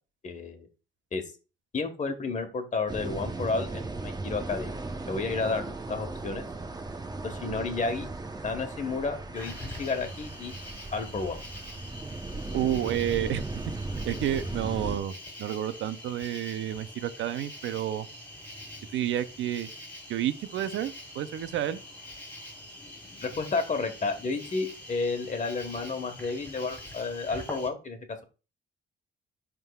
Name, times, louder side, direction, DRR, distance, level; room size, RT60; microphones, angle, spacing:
voice 1, 0.2-0.7 1.1-1.2 1.7-4.8 5.1-6.4 7.2-8.1 8.4-10.5 10.9-11.4 23.2-28.2, left 4 dB, 40° left, 1.5 m, -31 dB
sound 1, 2.9-15.0, right 2 dB, 20° right, 0.9 m, -37 dB
Cricket, 9.3-27.7, left 1 dB, 10° left, 3.1 m, -45 dB
voice 2, 12.5-13.4 14.0-15.1 15.4-18.1 18.9-19.7 20.1-21.8, right 11 dB, 75° right, 0.6 m, -30 dB
11.0 x 3.7 x 2.4 m
cardioid pair, 90°, 20 cm